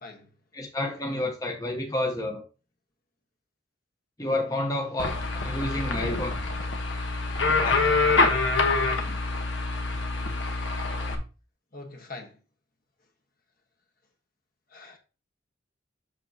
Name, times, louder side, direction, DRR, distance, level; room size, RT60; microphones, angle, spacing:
voice 1, 0.5-2.4 4.2-6.4 9.0-9.2, left 1 dB, 20° left, 0.9 m, -30 dB
sound 1, 5.0-11.2, left 3 dB, 75° left, 1.1 m, -26 dB
voice 2, 7.5-8.3 11.7-12.4 14.7-15.0, left 2 dB, 50° left, 1.2 m, -42 dB
7.1 x 6.5 x 2.8 m
head